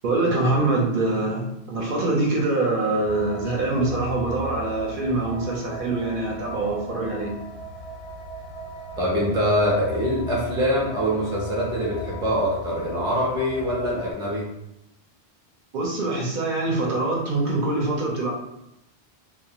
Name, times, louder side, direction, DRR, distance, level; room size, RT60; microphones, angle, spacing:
voice 1, 0.0-7.3 15.7-18.3, right 2 dB, 65° right, -3 dB, 0.7 m, -24 dB
sound 1, 3.0-14.1, left 2 dB, 55° left, 0.5 m, -37 dB
voice 2, 9.0-14.5, equal, 5° right, -5 dB, 0.4 m, -24 dB
2.3 x 2.0 x 2.8 m, 0.85 s
omnidirectional pair, 1.1 m